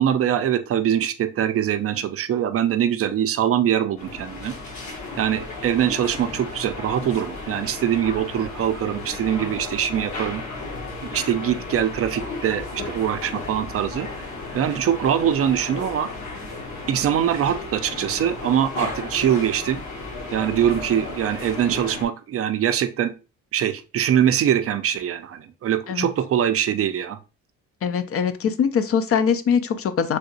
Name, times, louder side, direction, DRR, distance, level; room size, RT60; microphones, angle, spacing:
voice 1, 0.0-4.5 5.2-10.4 11.0-14.3 14.5-16.1 16.9-19.8 20.3-23.1 23.5-27.2, right 10 dB, 50° right, 10 dB, 0.4 m, -23 dB
sound 1, 4.0-22.0, left 3 dB, 65° left, 1.1 m, -34 dB
voice 2, 27.8-30.2, left 7 dB, 50° left, 10 dB, 0.4 m, -22 dB
3.4 x 2.8 x 2.6 m, 0.31 s
cardioid pair, 90°, 30 cm